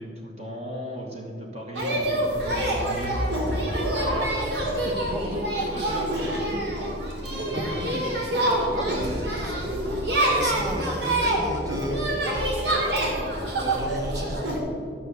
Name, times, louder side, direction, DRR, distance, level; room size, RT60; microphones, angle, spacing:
voice 1, 0.0-3.2 3.8-4.4 4.8-6.7 7.4-9.0 9.3-9.4, equal, 35° right, 0 dB, 1.3 m, -36 dB
sound 1, 1.7-14.6, right 1 dB, 70° right, 2.4 m, -26 dB
voice 2, 8.7-9.8 10.2-12.4 13.6-14.5, right 1 dB, 20° right, 1 dB, 1.4 m, -34 dB
12.5 x 6.5 x 6.9 m, 2.4 s
head